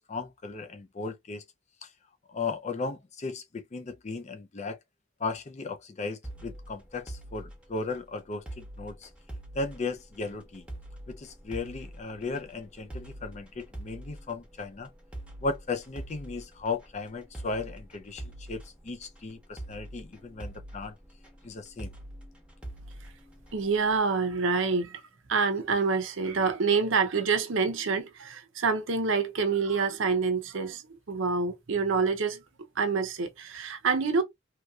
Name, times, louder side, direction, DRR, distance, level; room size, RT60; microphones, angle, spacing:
voice 1, 0.0-1.4 1.8-1.9 2.3-4.8 5.2-9.1 9.5-10.7 11.1-14.9 15.4-20.9 21.4-21.9, left 3 dB, 35° left, 0.5 m, -36 dB
sound 1, 6.2-24.0, right 1 dB, 5° right, 0.9 m, -45 dB
voice 2, 23.5-25.0 25.3-32.4 32.8-34.2, right 4 dB, 70° right, 0.7 m, -27 dB
3.2 x 2.8 x 2.3 m
head